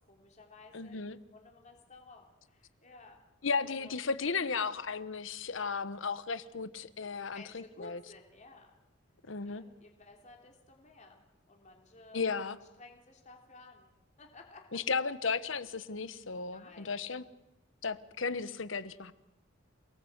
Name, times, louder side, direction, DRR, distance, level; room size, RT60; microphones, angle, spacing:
voice 1, 0.1-1.0 1.3-3.2 3.6-4.0 7.2-8.8 9.4-12.2 12.8-13.9 14.2-14.8 16.5-17.0, left 3 dB, 40° left, 2 dB, 3.2 m, -55 dB
voice 2, 0.7-1.2 3.4-8.0 9.3-9.6 12.1-12.6 14.7-17.2 17.8-19.1, left 5 dB, 70° left, 14 dB, 1.1 m, -35 dB
28.5 x 19.0 x 8.0 m, 0.96 s
head